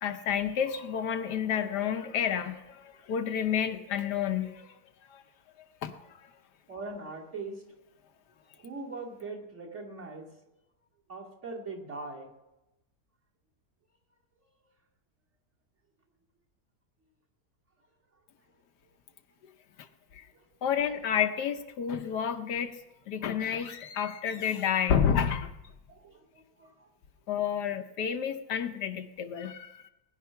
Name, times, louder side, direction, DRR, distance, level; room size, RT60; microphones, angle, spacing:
voice 1, 0.0-4.7 5.1-5.2 5.8-6.3 19.8-19.9 20.1-20.2 20.6-22.8 23.1-25.5 27.3-29.9, left 8 dB, 75° left, 8 dB, 1.3 m, -30 dB
voice 2, 6.7-7.6 8.5-10.3 11.1-12.3 20.3-20.5 25.9-26.9 27.3-27.4, right 3 dB, 40° right, -3 dB, 2.7 m, -41 dB
20.5 x 10.0 x 5.7 m, 0.97 s
omnidirectional pair, 1.8 m